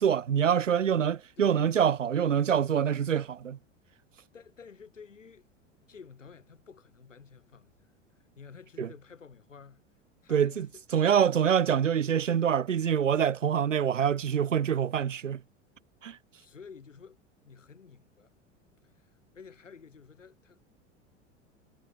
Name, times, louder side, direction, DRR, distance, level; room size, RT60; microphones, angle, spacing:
voice 1, 0.0-3.6 8.8-8.9 10.3-10.7 10.9-15.4 16.0-16.2, right 8 dB, 80° right, 0.8 m, -25 dB
voice 2, 4.3-5.5 5.8-7.9 8.2-9.8 10.2-11.0 16.4-17.2 17.4-18.3 18.8-20.7, left 6 dB, 80° left, 6.9 m, -51 dB
figure-of-eight pair, 85°, 37 cm